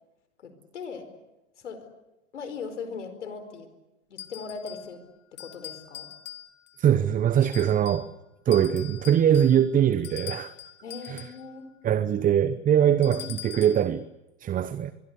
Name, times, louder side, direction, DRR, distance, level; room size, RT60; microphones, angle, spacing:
voice 1, 0.4-1.1 1.6-1.9 2.3-3.7 4.1-5.0 5.3-6.1 10.8-11.7 12.9-13.3, left 5 dB, 90° left, 4.7 m, -39 dB
sound 1, 4.2-4.9 5.4-6.8 7.4-8.1 8.5-11.4 13.0-13.9, left 12 dB, 30° left, 2.0 m, -43 dB
voice 2, 6.8-8.1 8.5-10.5 11.1-11.2 11.8-14.0 14.4-14.9, right 9 dB, 25° right, 0.8 m, -22 dB
24.0 x 23.5 x 8.4 m
hypercardioid pair, 110°, 35 cm